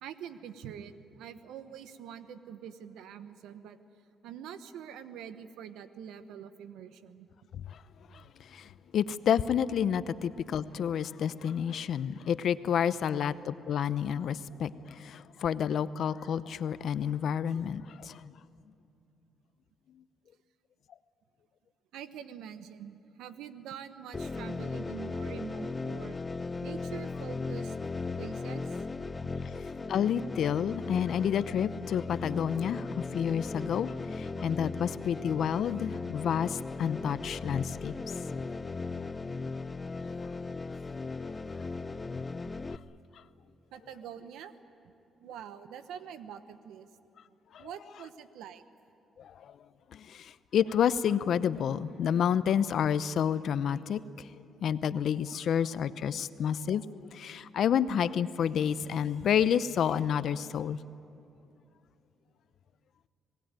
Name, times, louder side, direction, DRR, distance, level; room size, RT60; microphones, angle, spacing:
voice 1, 0.0-3.8 4.2-7.3 21.9-26.2 26.6-27.7 28.2-28.8 42.5-42.6 43.7-44.5 45.2-46.9 47.6-48.6, right 8 dB, 85° right, 11 dB, 1.1 m, -45 dB
voice 2, 8.1-18.3 29.4-29.5 29.9-38.1 40.0-40.1 40.5-40.6 41.1-41.4 47.5-47.7 49.2-49.5 49.9-54.3 54.6-60.8, left 8 dB, 65° left, 15 dB, 0.7 m, -30 dB
sound 1, 24.1-42.8, left 4 dB, 25° left, 0.7 m, -37 dB
26.0 x 19.0 x 9.1 m, 2.8 s
cardioid pair, 90°, 0 cm